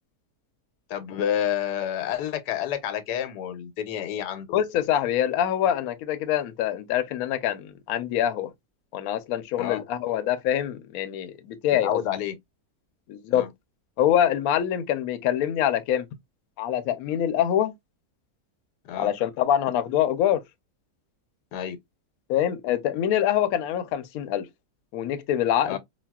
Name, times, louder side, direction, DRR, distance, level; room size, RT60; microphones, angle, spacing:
voice 1, 0.9-4.5 9.6-9.8 11.8-12.4 13.3-13.5 18.8-19.1 21.5-21.8 25.6-25.8, left 10 dB, 90° left, 1.2 m, -29 dB
voice 2, 4.5-8.5 8.9-12.0 13.1-13.5 14.0-16.1 16.6-17.7 19.0-20.4 22.3-24.5 24.9-25.8, left 10 dB, 70° left, 0.9 m, -25 dB
4.1 x 2.2 x 2.2 m
omnidirectional pair, 1.7 m